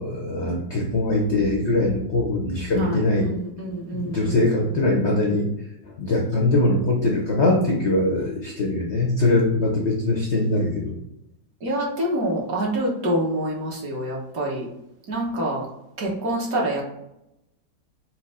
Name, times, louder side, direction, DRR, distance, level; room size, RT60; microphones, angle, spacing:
voice 1, 0.0-3.3 3.9-5.5 6.0-11.0, left 2 dB, 75° left, -1 dB, 0.6 m, -22 dB
voice 2, 2.8-4.5 11.6-14.6 15.1-15.6 16.0-16.8, right 1 dB, 55° right, -3 dB, 1.3 m, -26 dB
4.4 x 2.5 x 4.1 m, 0.85 s
omnidirectional pair, 2.1 m